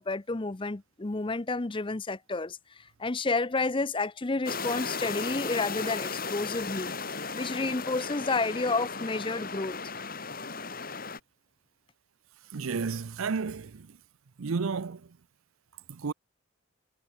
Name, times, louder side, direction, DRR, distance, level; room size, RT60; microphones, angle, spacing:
voice 1, 0.0-6.9 7.3-9.8, left 3 dB, 25° left, 0.6 m, -30 dB
sound 1, 4.5-11.2, left 4 dB, 45° left, 5.7 m, -35 dB
voice 2, 12.5-13.9 14.4-15.0 15.9-16.1, right 5 dB, 80° right, 0.6 m, -32 dB
head